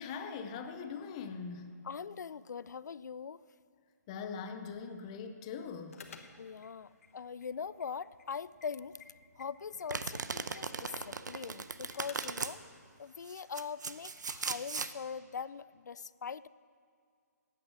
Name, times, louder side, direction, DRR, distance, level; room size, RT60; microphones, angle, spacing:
voice 1, 0.0-1.8 4.1-6.0, left 6 dB, 20° left, 7 dB, 0.5 m, -41 dB
voice 2, 1.8-3.4 6.4-9.0 9.4-12.6 13.0-16.5, left 6 dB, 75° left, 18 dB, 0.4 m, -42 dB
sound 1, 5.9-12.5, left 5 dB, 50° left, 1.1 m, -57 dB
Domestic sounds home sounds, 9.9-12.5 13.3-14.9, right 5 dB, 85° right, 0.7 m, -38 dB
16.0 x 9.1 x 6.3 m, 2.2 s
hypercardioid pair, 170°, 9 cm